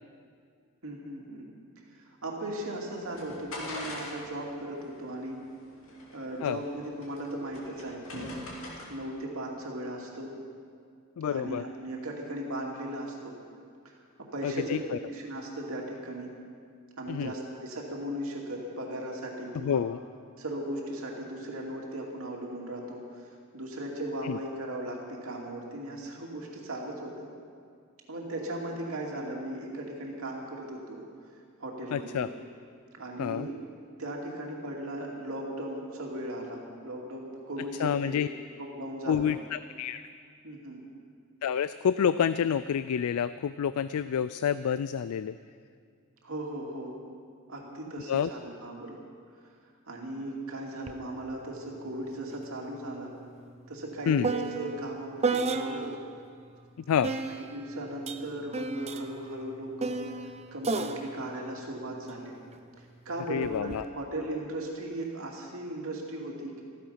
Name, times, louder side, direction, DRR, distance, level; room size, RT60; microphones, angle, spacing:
voice 1, 0.8-1.5 2.0-5.4 6.1-8.4 8.9-10.3 11.3-13.3 13.8-13.9 14.2-16.3 17.0-19.8 20.4-23.3 23.5-27.3 28.1-31.0 31.6-32.2 32.9-33.6 34.0-38.2 38.6-39.2 40.4-40.8 46.2-47.0 47.5-49.0 49.9-53.1 53.7-55.9 57.0-60.0 60.5-62.4 62.8-66.6, right 1 dB, 70° right, -1 dB, 2.6 m, -37 dB
sound 1, 2.6-9.2, left 1 dB, 65° left, 2.7 m, -44 dB
voice 2, 11.2-11.6 14.4-14.8 17.1-17.3 19.5-20.0 24.2-24.4 31.9-32.3 33.2-33.5 37.8-38.3 39.1-40.0 41.4-45.3 48.1-48.3 54.1-54.3 56.9-57.1 63.3-63.8, left 8 dB, 85° left, 14 dB, 0.4 m, -28 dB
sound 2, 50.9-51.0 51.3-56.1 57.0-62.6 63.4-63.8, right 4 dB, 30° right, 0.7 m, -34 dB
15.0 x 14.5 x 5.7 m, 2.2 s
head